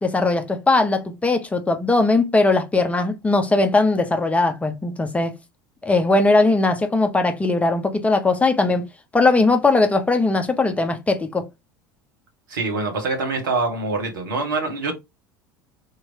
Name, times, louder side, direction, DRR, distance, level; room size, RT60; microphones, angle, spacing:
voice 1, 0.0-5.4 5.8-8.8 9.1-11.4, left 3 dB, 10° left, 0.9 m, -19 dB
voice 2, 12.5-14.9, right 3 dB, 70° right, 1.8 m, -24 dB
3.7 x 3.2 x 4.2 m
figure-of-eight pair, 70°, 11 cm